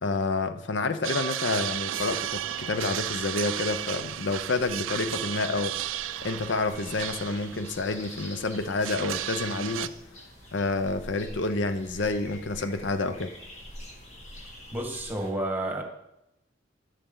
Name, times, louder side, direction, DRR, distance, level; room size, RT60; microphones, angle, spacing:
voice 1, 0.0-5.8 6.2-9.9 10.5-13.3, left 3 dB, 65° left, 0.7 m, -29 dB
sound 1, 1.0-9.9, right 13 dB, 90° right, 0.4 m, -34 dB
sound 2, 1.6-15.3, equal, 35° left, 2.0 m, -47 dB
voice 2, 14.7-15.8, right 1 dB, 10° right, 1.5 m, -30 dB
12.5 x 6.6 x 3.9 m
head